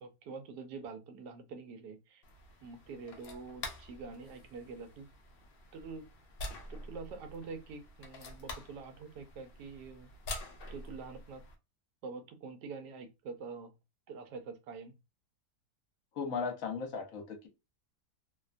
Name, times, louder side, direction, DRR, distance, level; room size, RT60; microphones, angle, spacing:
voice 1, 0.0-2.2 2.6-5.1 5.7-6.1 6.7-10.1 10.7-11.4 12.0-13.7 14.1-14.9, right 4 dB, 85° right, 1.2 m, -46 dB
sound 1, 2.2-11.6, left 2 dB, 90° left, 0.5 m, -47 dB
voice 2, 16.1-17.5, left 5 dB, 65° left, 1.0 m, -36 dB
2.8 x 2.1 x 2.4 m
omnidirectional pair, 1.7 m